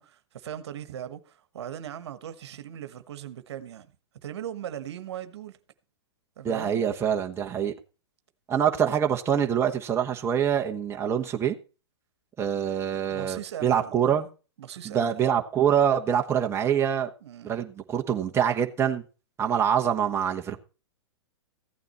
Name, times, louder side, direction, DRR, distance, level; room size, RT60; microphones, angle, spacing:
voice 1, 0.0-3.9 4.2-5.6 6.4-6.8 13.1-14.1 14.6-15.1 17.2-17.6, right 10 dB, 70° right, 1.3 m, -39 dB
voice 2, 6.4-7.7 8.5-11.6 12.4-14.3 14.8-17.1 17.4-19.0 19.4-20.6, right 8 dB, 15° right, 1.3 m, -25 dB
15.0 x 9.2 x 4.3 m
hypercardioid pair, 125°, 15 cm